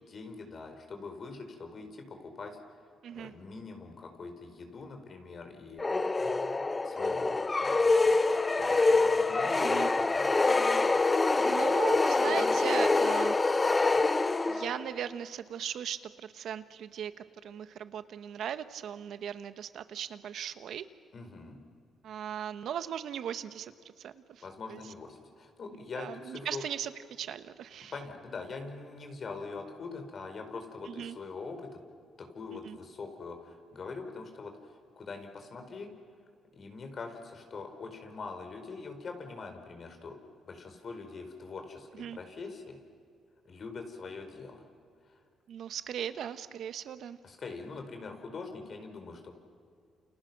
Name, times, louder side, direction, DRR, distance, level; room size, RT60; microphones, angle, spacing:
voice 1, 0.1-2.6 3.1-5.8 6.8-7.3 7.6-10.4 21.1-21.6 24.4-26.6 27.9-31.8 32.2-35.9 36.5-40.1 40.4-42.8 43.4-44.6 45.1-45.2 47.2-49.3, left 4 dB, 45° left, 5 dB, 4.7 m, -43 dB
sound 1, 5.8-14.9, left 3 dB, 25° left, 0.8 m, -26 dB
voice 2, 11.4-13.3 14.5-20.9 22.0-24.4 24.7-24.9 25.7-27.9 30.8-31.2 32.6-32.8 41.9-42.2 45.5-47.2, right 9 dB, 70° right, 11 dB, 1.3 m, -38 dB
29.5 x 29.0 x 6.1 m, 2.3 s
cardioid pair, 90°, 0 cm